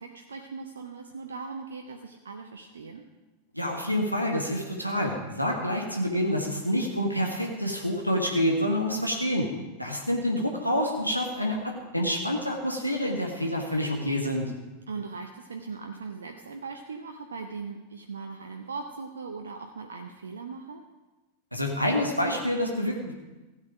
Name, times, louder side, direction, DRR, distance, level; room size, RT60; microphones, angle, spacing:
voice 1, 0.0-3.0 14.9-20.8, right 4 dB, 70° right, 4 dB, 0.8 m, -39 dB
voice 2, 3.5-9.5 9.8-14.5 21.5-23.1, equal, 90° left, 0 dB, 1.4 m, -27 dB
15.5 x 8.4 x 4.9 m, 1.1 s
figure-of-eight pair, 90°, 0 cm